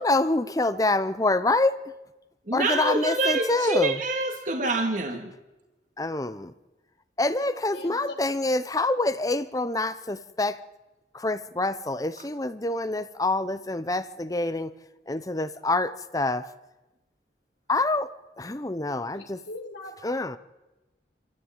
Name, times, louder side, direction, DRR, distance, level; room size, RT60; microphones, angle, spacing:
voice 1, 0.0-1.8 2.5-3.9 6.0-6.5 7.2-10.6 11.1-14.7 15.1-16.4 17.7-18.1 18.4-19.4 20.0-20.4, left 2 dB, 20° left, 13 dB, 0.7 m, -26 dB
voice 2, 2.5-5.3, right 2 dB, 45° right, 4 dB, 2.2 m, -26 dB
voice 3, 7.7-8.1 19.1-19.9, left 2 dB, 85° left, 1 dB, 3.4 m, -40 dB
27.5 x 14.0 x 9.0 m, 1.0 s
head